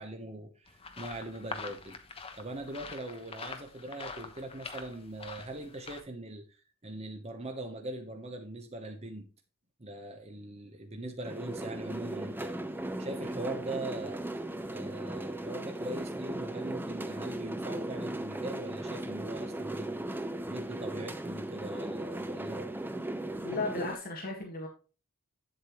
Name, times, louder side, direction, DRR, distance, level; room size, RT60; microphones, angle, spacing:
voice 1, 0.0-2.0 2.4-9.3 9.8-12.6 13.0-14.2 14.7-22.7, right 2 dB, 30° right, 4 dB, 1.0 m, -41 dB
sound 1, 0.7-6.0, left 4 dB, 25° left, 1.0 m, -45 dB
sound 2, 11.2-24.0, right 1 dB, 10° right, 0.7 m, -37 dB
voice 2, 23.4-24.7, left 2 dB, 45° left, 0 dB, 1.9 m, -35 dB
8.8 x 7.7 x 3.1 m, 0.34 s
head